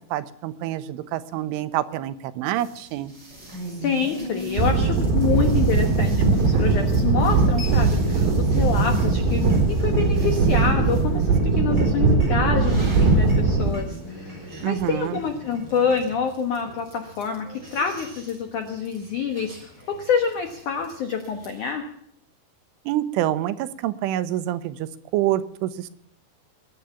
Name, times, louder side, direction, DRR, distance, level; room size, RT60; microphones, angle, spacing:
voice 1, 0.1-3.1 14.6-15.2 22.9-24.9 25.1-25.9, right 13 dB, 90° right, 13 dB, 3.3 m, -26 dB
sound 1, 2.6-21.7, left 1 dB, 20° right, 7.1 m, -40 dB
voice 2, 3.8-21.9, left 6 dB, 80° left, 6 dB, 1.8 m, -27 dB
sound 2, 4.6-13.7, right 3 dB, 65° right, 7.0 m, -20 dB
22.0 x 9.0 x 7.1 m, 0.71 s
omnidirectional pair, 5.5 m